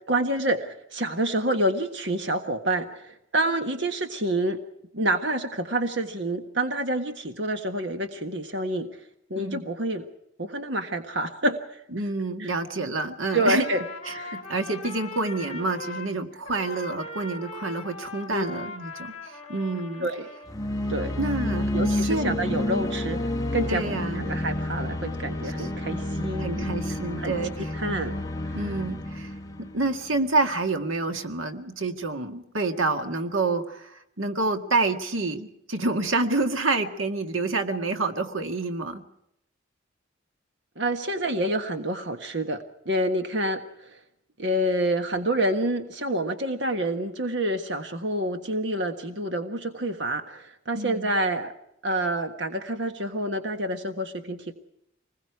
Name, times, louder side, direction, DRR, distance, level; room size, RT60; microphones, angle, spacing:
voice 1, 0.1-4.6 4.9-8.9 9.3-10.1 10.4-11.8 12.4-12.5 13.3-13.8 14.1-14.4 18.3-18.4 20.0-20.2 20.9-21.1 21.7-23.8 24.1-26.7 27.2-28.1 28.4-28.6 40.8-44.0 44.4-51.5 51.8-54.5, right 1 dB, 60° right, 6 dB, 1.5 m, -28 dB
voice 2, 11.9-13.7 14.1-20.1 21.2-22.4 23.7-24.3 25.6-25.7 26.4-27.7 28.5-29.3 29.6-39.0 50.7-51.1, right 3 dB, 90° right, 6 dB, 1.9 m, -28 dB
Trumpet, 13.2-16.1 16.4-20.6, left 2 dB, 35° left, 3.6 m, -40 dB
sound 1, 20.5-30.5, left 1 dB, 20° left, 1.3 m, -30 dB
26.5 x 20.5 x 4.7 m, 0.78 s
head